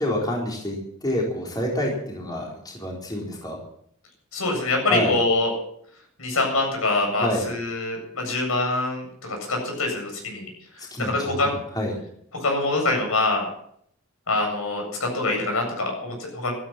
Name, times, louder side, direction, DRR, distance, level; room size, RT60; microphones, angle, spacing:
voice 1, 0.0-3.6 4.9-5.2 7.2-7.4 10.9-12.0, left 1 dB, 20° left, -3 dB, 4.2 m, -27 dB
voice 2, 4.3-5.5 6.2-10.5 11.0-11.5 12.3-13.5 14.3-16.5, left 2 dB, 70° left, 2 dB, 7.9 m, -25 dB
15.0 x 14.0 x 6.1 m, 0.68 s
head